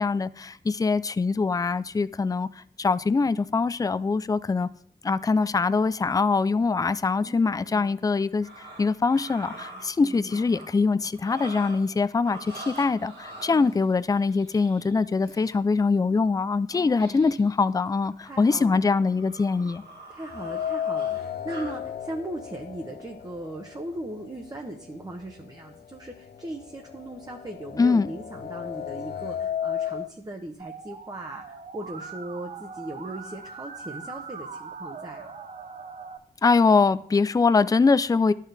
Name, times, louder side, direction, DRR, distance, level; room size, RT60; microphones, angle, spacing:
voice 1, 0.0-4.7 5.0-8.5 8.8-19.8 27.8-28.1 36.4-38.3, left 4 dB, 20° left, 0.4 m, -23 dB
voice 2, 7.2-7.9 10.0-10.6 13.5-13.8 16.7-17.3 18.2-18.9 20.1-35.3, right 1 dB, 20° right, 1.0 m, -38 dB
sound 1, 8.2-10.7 11.1-12.0 12.2-15.6 17.0-17.6 17.9-18.1 18.6-21.8, right 2 dB, 75° right, 1.9 m, -45 dB
sound 2, 20.3-24.3 24.7-24.8 25.8-25.9 26.2-30.1, left 9 dB, 75° left, 0.6 m, -33 dB
Musical instrument, 30.6-36.2, right 5 dB, 45° right, 0.8 m, -41 dB
11.5 x 4.6 x 3.4 m
cardioid pair, 45°, 17 cm